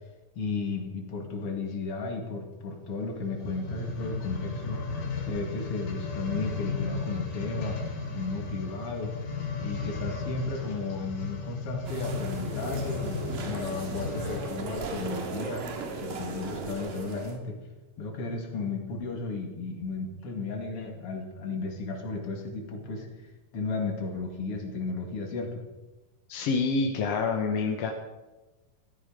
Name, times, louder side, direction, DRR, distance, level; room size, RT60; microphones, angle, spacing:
voice 1, 0.3-4.8 5.2-7.8 8.1-9.1 9.6-15.6 16.0-17.6 18.0-23.1 23.5-25.6, left 3 dB, 45° left, 2 dB, 2.9 m, -34 dB
sound 1, 3.3-14.7 15.3-15.4, left 4 dB, 85° left, 4.1 m, -35 dB
sound 2, 11.9-17.4, right 4 dB, 80° right, 3.4 m, -37 dB
voice 2, 26.3-27.9, left 4 dB, 65° left, 3 dB, 1.7 m, -27 dB
15.0 x 13.0 x 5.2 m, 1.1 s
omnidirectional pair, 3.8 m